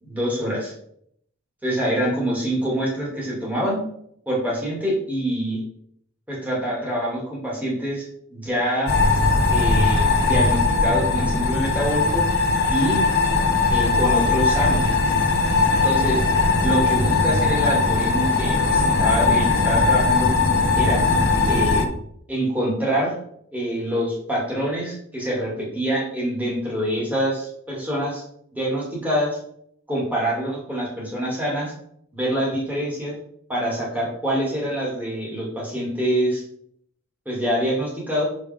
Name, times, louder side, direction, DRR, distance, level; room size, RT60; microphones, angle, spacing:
voice 1, 0.0-0.7 1.6-3.8 4.3-5.6 6.3-9.0 9.5-12.2 12.7-13.0 13.7-14.9 15.8-16.2 16.6-20.3 20.7-21.0 21.4-21.9 22.3-23.2 23.5-28.2 28.5-29.4 29.9-31.7 32.1-33.2 33.5-36.4 37.3-38.2, equal, 10° right, -5 dB, 2.3 m, -25 dB
sound 1, 8.9-21.9, left 3 dB, 50° left, 0.9 m, -19 dB
6.5 x 5.0 x 3.6 m, 0.69 s
head